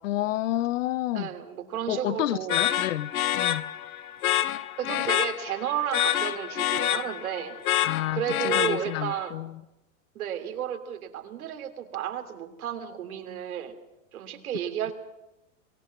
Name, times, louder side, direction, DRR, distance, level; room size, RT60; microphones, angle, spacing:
voice 1, 0.0-1.3 1.9-3.7 7.8-9.6, left 14 dB, 65° left, 0.7 m, -30 dB
voice 2, 1.1-2.6 4.8-7.6 8.1-9.4 10.1-13.7 14.1-14.9, right 10 dB, 85° right, 3.0 m, -32 dB
sound 1, 2.5-9.2, left 12 dB, 85° left, 1.1 m, -27 dB
23.0 x 18.0 x 7.2 m
supercardioid pair, 165°, 42 cm